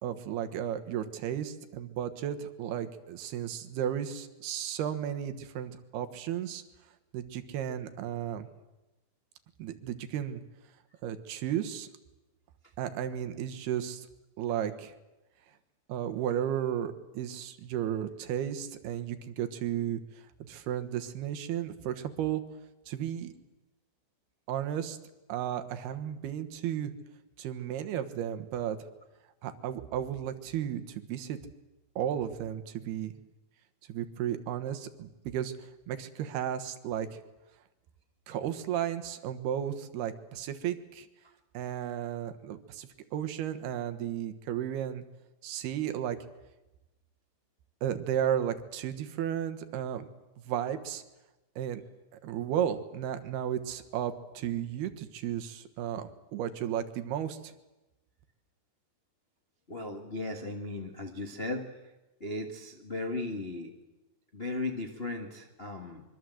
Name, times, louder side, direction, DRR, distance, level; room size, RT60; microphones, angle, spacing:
voice 1, 0.0-6.6 7.1-8.5 9.6-10.4 11.0-11.9 12.8-14.1 14.4-14.9 15.9-20.0 20.4-22.4 22.9-23.3 24.5-25.0 25.3-26.9 27.4-28.8 29.4-31.4 32.0-33.1 33.9-37.2 38.3-41.1 41.5-45.0 45.4-46.2 47.8-50.0 50.5-51.0 51.6-51.8 52.2-57.5, right 10 dB, 75° right, 9 dB, 3.2 m, -34 dB
voice 2, 59.7-61.8 62.2-63.7 64.3-66.0, left 2 dB, 60° left, 2 dB, 0.6 m, -36 dB
24.5 x 24.0 x 7.8 m, 1.0 s
omnidirectional pair, 4.7 m